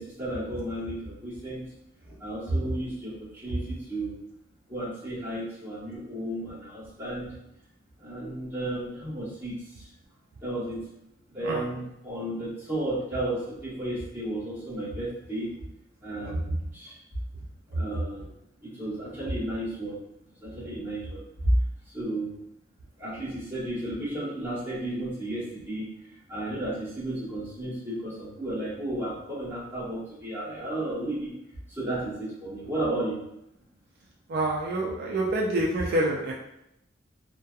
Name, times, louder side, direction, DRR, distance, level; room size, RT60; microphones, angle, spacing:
voice 1, 0.0-1.7 2.1-4.1 4.7-7.3 8.0-9.9 10.4-10.8 11.3-15.5 16.0-17.0 17.7-18.3 18.6-20.0 20.4-21.5 21.9-22.3 23.0-25.9 26.3-31.3 31.7-33.2, right 1 dB, 10° right, -9 dB, 1.1 m, -32 dB
voice 2, 34.3-36.3, right 1 dB, 55° right, -2 dB, 0.3 m, -27 dB
2.7 x 2.2 x 2.3 m, 0.82 s
head